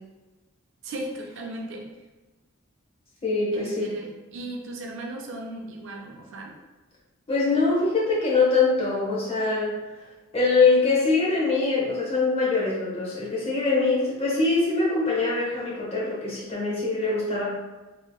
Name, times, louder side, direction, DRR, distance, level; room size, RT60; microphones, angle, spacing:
voice 1, 0.8-1.9 3.5-6.5, right 1 dB, 55° right, 0 dB, 0.4 m, -36 dB
voice 2, 3.2-3.9 7.3-9.8 10.3-17.4, left 3 dB, 25° left, -6 dB, 0.8 m, -23 dB
3.0 x 2.7 x 2.3 m, 1.2 s
head